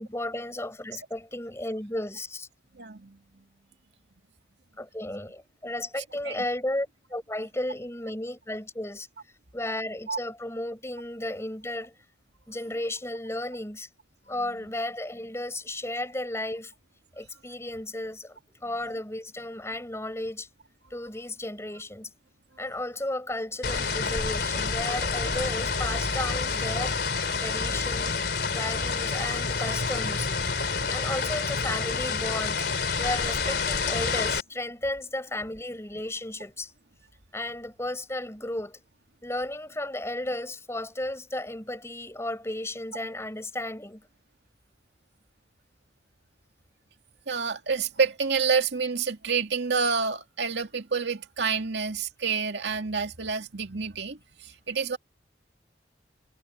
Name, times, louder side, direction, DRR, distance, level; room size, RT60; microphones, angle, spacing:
voice 1, 0.0-2.5 4.8-9.1 9.5-11.9 12.5-13.9 14.3-16.7 17.2-20.5 20.9-22.1 22.6-27.0 27.4-28.2 28.5-30.3 30.9-32.6 33.0-36.7 37.3-38.8 39.2-44.0, left 1 dB, 15° left, 5.2 m, -34 dB
voice 2, 2.8-3.2 6.2-6.4 10.1-10.2 47.3-54.2 54.4-55.0, right 5 dB, 80° right, 2.2 m, -28 dB
sound 1, 23.6-34.4, left 4 dB, 65° left, 3.3 m, -28 dB
head